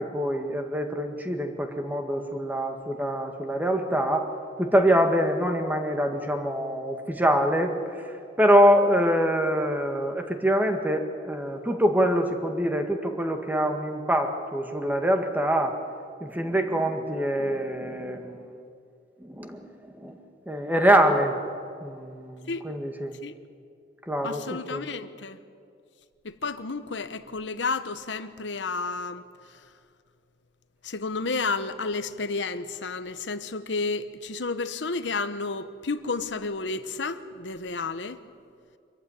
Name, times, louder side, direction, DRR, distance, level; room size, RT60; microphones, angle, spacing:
voice 1, 0.0-4.3 4.6-15.8 16.2-18.4 19.2-19.7 19.9-20.2 20.5-21.4 21.8-23.2 24.1-24.9, equal, 10° right, 1.8 m, -24 dB
voice 2, 24.2-25.4 26.2-29.2 29.5-29.6 30.8-38.2, left 3 dB, 80° left, 1.0 m, -31 dB
24.5 x 14.5 x 9.8 m
head